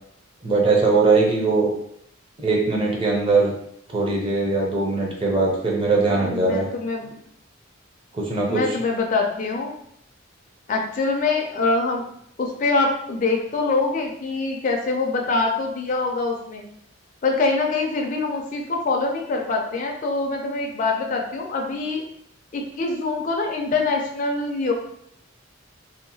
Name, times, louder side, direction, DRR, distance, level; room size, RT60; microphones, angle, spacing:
voice 1, 0.4-1.7 2.4-3.5 3.9-6.7 8.1-8.6, right 3 dB, 25° right, -2 dB, 0.5 m, -20 dB
voice 2, 6.1-7.1 8.5-9.7 10.7-12.0 12.4-16.7 17.2-22.0 22.5-24.7, left 3 dB, 40° left, 1 dB, 0.3 m, -24 dB
2.7 x 2.1 x 2.7 m, 0.71 s
head